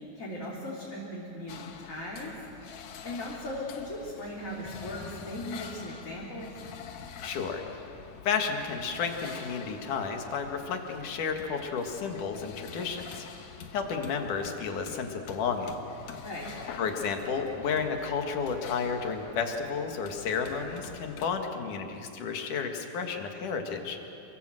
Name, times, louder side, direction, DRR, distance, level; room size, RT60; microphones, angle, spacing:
voice 1, 0.0-2.3 2.7-2.8 3.0-6.5 16.2-16.5, left 1 dB, 25° left, -5 dB, 3.7 m, -38 dB
sound 1, 1.5-21.3, left 7 dB, 70° left, 2.5 m, -46 dB
voice 2, 7.2-7.6 8.3-13.3 13.7-15.7 16.8-24.0, left 5 dB, 85° left, 4 dB, 3.5 m, -32 dB
28.5 x 23.5 x 7.8 m, 2.8 s
omnidirectional pair, 3.5 m